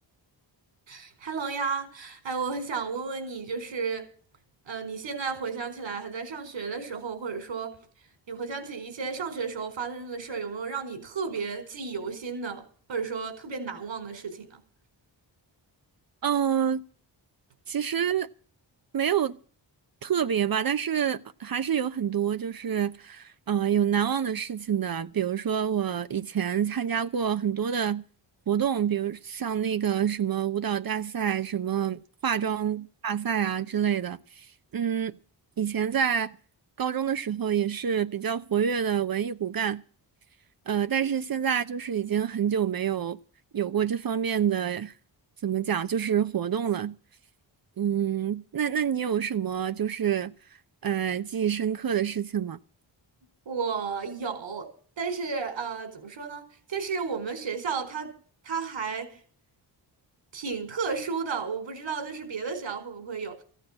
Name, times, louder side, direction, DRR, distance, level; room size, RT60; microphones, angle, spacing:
voice 1, 0.9-4.1 4.6-7.8 8.3-12.6 12.9-14.6 32.3-32.5 53.5-54.7 55.0-58.1 58.4-59.1 60.3-63.4, right 5 dB, 85° right, 4.6 m, -33 dB
voice 2, 16.2-16.8 17.7-18.3 18.9-19.4 20.0-28.0 28.5-34.5 34.7-35.1 35.6-36.3 36.8-39.8 40.7-43.2 43.5-44.9 45.4-46.9 47.8-50.3 50.8-52.6, right 8 dB, 50° right, 0.8 m, -27 dB
15.0 x 9.2 x 7.4 m
wide cardioid pair, 110°, 44 cm